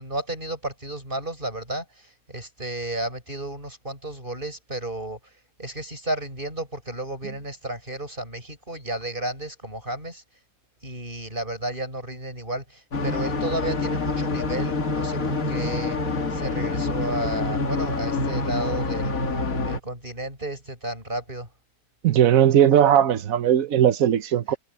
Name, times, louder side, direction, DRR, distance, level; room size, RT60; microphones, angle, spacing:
voice 1, 0.0-5.2 5.6-10.2 10.8-19.1 19.6-21.5, right 1 dB, 30° right, 8.4 m, -32 dB
sound 1, 12.9-19.8, left 3 dB, 60° left, 2.5 m, -26 dB
voice 2, 22.0-24.5, right 10 dB, 60° right, 1.3 m, -18 dB
omnidirectional pair, 1.7 m